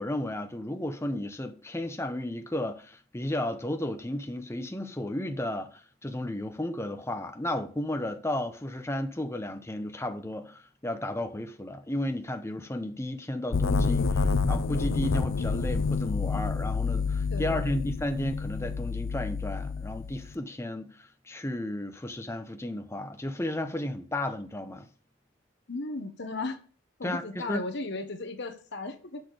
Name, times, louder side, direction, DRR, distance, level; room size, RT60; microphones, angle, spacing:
voice 1, 0.0-24.9 27.0-27.6, left 1 dB, 15° left, 0.8 m, -33 dB
sound 1, 13.5-20.3, left 4 dB, 75° left, 0.6 m, -28 dB
voice 2, 17.3-17.8 25.7-26.6 27.0-29.2, left 2 dB, 60° left, 1.1 m, -36 dB
6.5 x 6.3 x 5.0 m
head